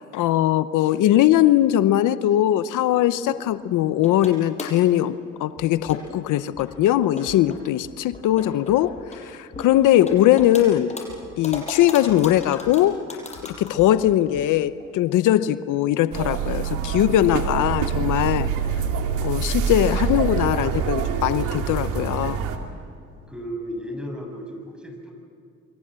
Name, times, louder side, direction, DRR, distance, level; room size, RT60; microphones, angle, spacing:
voice 1, 0.0-10.9 11.4-13.0 13.4-18.5 19.2-22.4, left 13 dB, 85° left, 13 dB, 0.8 m, -20 dB
sound 1, 3.0-3.5 4.0-4.9 5.3-5.4 5.9-6.3 6.6-6.7 7.0-7.6 8.1-9.2 9.6-10.6 10.9-13.9 14.2-14.3 14.8-14.9 15.2-15.3 16.2-16.3 16.7-16.8, left 3 dB, 20° left, 6.8 m, -37 dB
sound 2, 5.6-5.9 6.6-6.8 7.3-7.4 7.8-8.2 8.7-9.1 9.5-9.6 10.1-10.5 11.1-11.6 12.1-12.7 13.3-14.4, left 7 dB, 70° left, 3.0 m, -45 dB
sound 3, 16.1-22.6, right 7 dB, 85° right, 2.6 m, -25 dB
voice 2, 23.3-25.1, equal, 5° right, 2 dB, 7.1 m, -34 dB
29.5 x 23.0 x 7.6 m, 2.4 s
cardioid pair, 90°, 30 cm